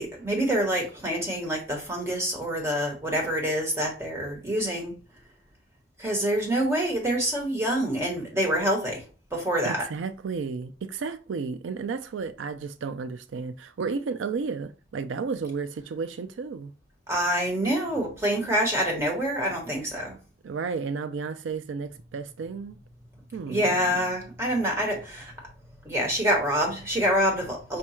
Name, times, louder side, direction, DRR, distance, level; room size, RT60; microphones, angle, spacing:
voice 1, 0.0-4.9 6.0-9.0 9.3-9.8 17.1-20.2 23.5-25.3 25.8-27.8, equal, 15° right, 1.3 m, -26 dB
voice 2, 9.6-16.7 20.4-22.8 23.3-24.0, right 5 dB, 85° right, 0.4 m, -33 dB
5.2 x 2.3 x 4.2 m
head